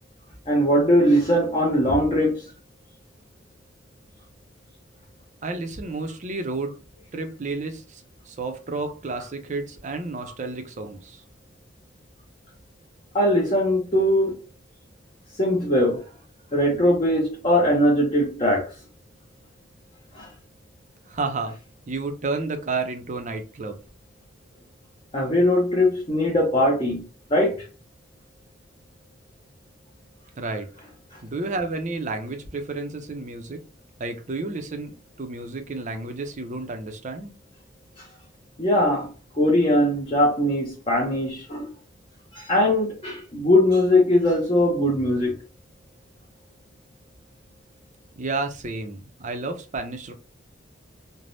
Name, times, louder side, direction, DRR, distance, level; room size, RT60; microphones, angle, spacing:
voice 1, 0.5-2.5 13.1-14.4 15.4-16.0 16.5-18.7 20.1-20.3 25.1-27.0 27.3-27.7 31.1-31.2 38.0-38.1 38.6-41.7 42.3-45.3, left 1 dB, 30° left, 0.6 m, -20 dB
voice 2, 5.4-6.7 7.1-11.2 21.1-21.6 21.9-23.8 30.4-30.7 31.2-33.6 34.0-37.3 48.2-50.1, right 3 dB, 40° right, 0.5 m, -31 dB
3.3 x 2.1 x 2.5 m
head